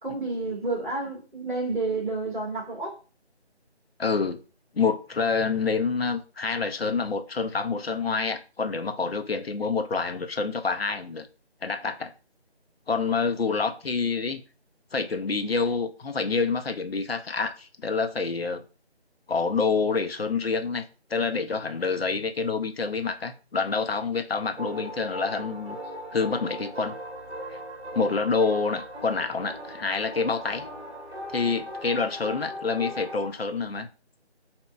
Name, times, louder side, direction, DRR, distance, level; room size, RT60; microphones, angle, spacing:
voice 1, 0.0-3.0, right 3 dB, 45° right, 1.6 m, -30 dB
voice 2, 4.0-4.4 4.7-11.3 11.6-12.1 12.9-14.4 14.9-18.6 19.3-20.8 21.1-25.8 26.1-27.0 27.9-30.6 31.3-33.9, left 4 dB, 60° left, 0.5 m, -27 dB
sound 1, 24.6-33.3, equal, 70° right, 1.1 m, -38 dB
4.9 x 2.8 x 2.3 m
figure-of-eight pair, 170°, 34 cm